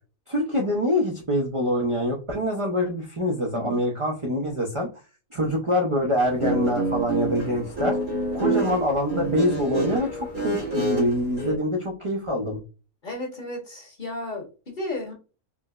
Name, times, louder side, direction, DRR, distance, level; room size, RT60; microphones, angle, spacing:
voice 1, 0.3-4.9 5.3-8.0 8.3-12.6, equal, 45° right, -1 dB, 0.4 m, -25 dB
Guitar, 6.2-11.5, right 2 dB, 90° right, 2.1 m, -27 dB
voice 2, 13.0-15.1, left 2 dB, 40° left, 0 dB, 1.0 m, -33 dB
4.7 x 2.0 x 2.3 m, 0.33 s
omnidirectional pair, 1.5 m